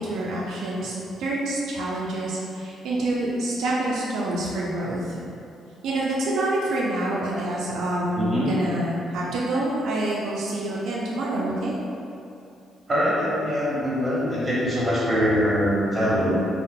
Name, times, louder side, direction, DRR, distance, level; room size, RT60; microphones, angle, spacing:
voice 1, 0.0-5.1 5.8-11.8, right 1 dB, 80° right, -5 dB, 0.4 m, -27 dB
voice 2, 8.1-8.5 12.9-16.3, equal, 20° right, -8 dB, 1.2 m, -23 dB
2.7 x 2.1 x 3.6 m, 2.6 s
cardioid pair, 90°, 0 cm